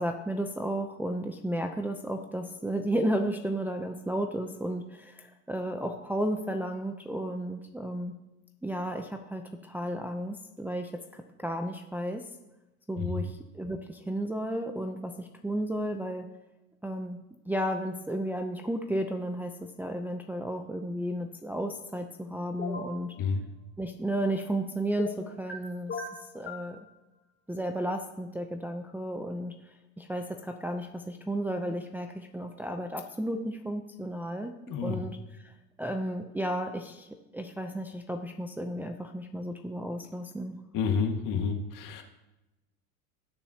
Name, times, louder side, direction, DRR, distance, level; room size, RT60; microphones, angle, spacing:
voice 1, 0.0-8.2 8.6-12.2 12.9-16.3 16.8-17.2 17.5-23.1 23.8-26.0 26.3-26.8 27.5-34.5 34.8-35.5 35.8-37.1 37.3-40.6, right 1 dB, 5° right, 4 dB, 0.6 m, -33 dB
sound 1, 22.6-22.9 25.0-25.6 25.9-26.7, left 3 dB, 25° left, 2.1 m, -37 dB
voice 2, 34.7-35.0 40.7-42.0, left 5 dB, 45° left, 3 dB, 1.9 m, -29 dB
19.5 x 6.8 x 2.9 m, 0.99 s
hypercardioid pair, 95°, 44 cm